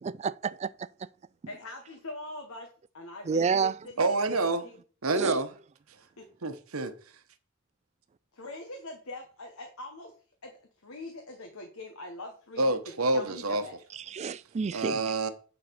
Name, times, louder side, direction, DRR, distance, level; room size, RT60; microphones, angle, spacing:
voice 1, 0.0-0.7 3.3-3.7 5.2-5.3 14.1-15.0, right 5 dB, 30° right, 0.3 m, -29 dB
voice 2, 1.5-2.7 2.9-4.7 6.2-6.3 8.3-10.1 10.4-12.7 13.1-13.7, left 2 dB, 80° left, 1.3 m, -43 dB
voice 3, 4.0-4.6 5.0-5.5 6.4-6.9 12.6-13.6 14.7-15.3, right 2 dB, 85° right, 1.1 m, -27 dB
9.5 x 4.1 x 6.0 m
head